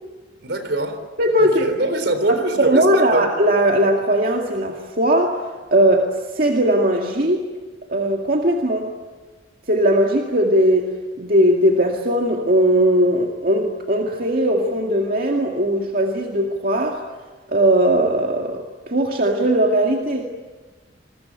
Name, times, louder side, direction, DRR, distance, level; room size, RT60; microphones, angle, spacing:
voice 1, 0.4-1.0 1.4-3.3, right 2 dB, 75° right, 9 dB, 3.7 m, -23 dB
voice 2, 1.2-1.7 2.6-5.4 5.7-7.4 7.9-8.9 9.7-10.9 11.2-17.0 17.5-20.5, right 1 dB, 50° right, 1 dB, 2.1 m, -19 dB
28.0 x 22.0 x 8.9 m, 1.3 s
head